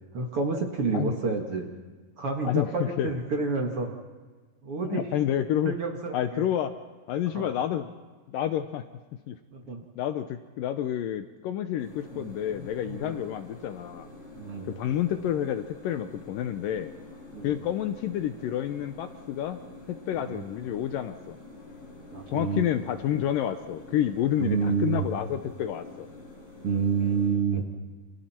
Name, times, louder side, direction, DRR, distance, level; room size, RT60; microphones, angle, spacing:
voice 1, 0.1-1.7 2.2-3.9 4.6-5.0 5.6-6.4 7.3-7.5 9.5-9.8 12.1-13.2 14.4-14.8 17.3-17.6 20.2-20.4 22.1-22.7 24.4-25.1 26.6-27.7, right 4 dB, 45° right, 2 dB, 2.3 m, -29 dB
voice 2, 2.4-3.1 4.8-5.8 6.1-6.7 7.1-7.9 8.3-8.8 9.3-9.4 10.0-14.1 14.6-16.9 17.4-19.6 19.9-21.4 22.3-26.1, left 11 dB, 75° left, 8 dB, 2.2 m, -29 dB
sound 1, 11.8-27.3, left 2 dB, 40° left, 6.7 m, -47 dB
29.5 x 27.5 x 4.4 m, 1.4 s
omnidirectional pair, 4.5 m